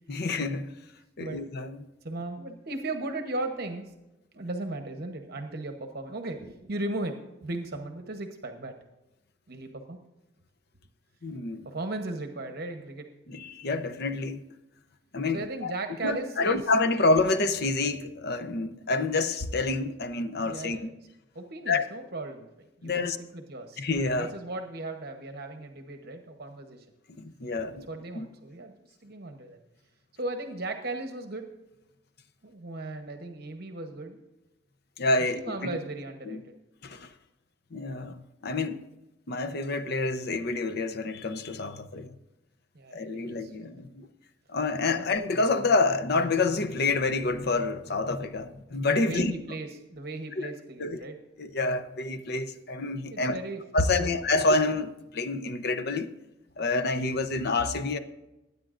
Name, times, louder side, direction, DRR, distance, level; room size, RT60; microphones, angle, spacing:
voice 1, 0.1-0.7 1.2-1.9 11.2-11.7 13.3-14.4 15.1-15.7 16.0-20.9 21.7-21.8 22.8-23.2 23.8-24.3 27.2-27.9 28.1-28.3 35.0-35.4 36.3-36.4 36.8-37.1 37.7-38.9 39.3-42.1 42.9-44.1 44.5-49.3 50.4-50.5 50.8-51.0 51.4-53.4 53.7-56.1 56.6-58.0, left 3 dB, 60° left, 0.7 m, -28 dB
voice 2, 2.0-3.9 4.3-8.7 9.5-10.0 11.6-13.1 15.3-16.6 20.4-20.9 21.3-22.5 22.8-23.9 24.2-26.8 27.8-28.8 29.0-29.6 30.2-31.5 32.4-34.2 35.3-36.5 42.7-43.9 45.0-45.1 49.0-51.2 53.1-54.2, right 2 dB, 60° right, 0.9 m, -37 dB
20.5 x 9.4 x 2.5 m
head